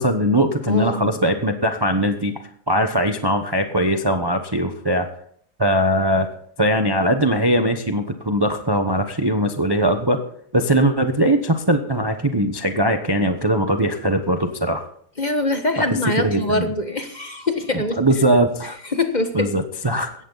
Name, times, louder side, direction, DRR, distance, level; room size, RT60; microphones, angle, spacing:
voice 1, 0.0-2.4 2.7-5.1 5.6-6.3 6.6-10.2 10.5-14.9 15.8-15.9 16.2-16.7 18.0-18.8 19.3-20.1, right 1 dB, 20° right, 6 dB, 0.9 m, -20 dB
voice 2, 0.7-1.2 15.2-18.0 18.8-19.5, left 2 dB, 30° left, 6 dB, 1.4 m, -23 dB
17.5 x 14.0 x 4.0 m, 0.64 s
omnidirectional pair, 1.8 m